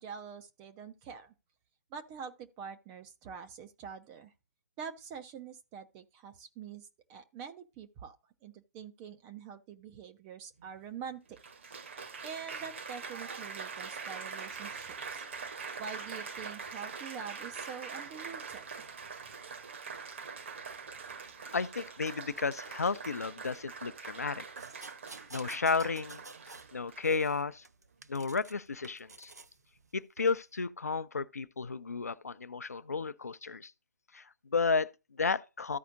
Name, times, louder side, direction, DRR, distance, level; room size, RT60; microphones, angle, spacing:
voice 1, 0.0-1.3 1.9-4.3 4.8-8.2 8.4-11.4 12.2-15.2 15.8-18.7, right 7 dB, 10° right, 0.3 m, -45 dB
Applause, 10.6-10.7 11.4-27.3 28.0-28.3, right 5 dB, 45° right, 0.9 m, -43 dB
voice 2, 21.5-24.4 25.3-26.2 26.7-27.6 28.1-29.3 29.9-33.7 34.1-35.8, left 4 dB, 60° left, 0.5 m, -33 dB
sound 1, 24.6-26.7 27.0-28.5 28.8-29.5 30.2-30.3, right 3 dB, 70° right, 0.5 m, -50 dB
14.0 x 4.9 x 2.5 m
figure-of-eight pair, 140°, 9 cm